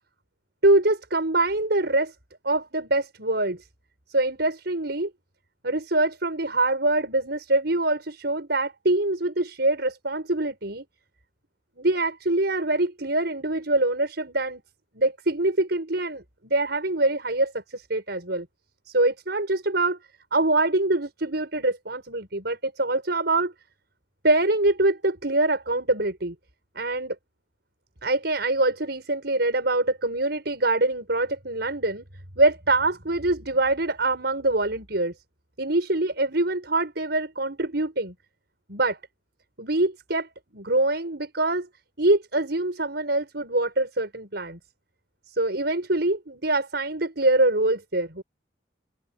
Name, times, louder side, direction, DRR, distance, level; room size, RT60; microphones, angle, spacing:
voice 1, 0.6-2.1 2.4-3.7 4.1-5.1 5.6-10.8 11.8-14.6 14.9-18.5 18.9-20.0 20.3-23.5 24.2-26.3 26.7-27.1 28.0-32.1 32.4-35.1 35.6-38.1 38.7-39.0 39.6-41.7 42.0-44.6 45.3-48.2, right 2 dB, 60° right, 6.9 m, -24 dB
open air
head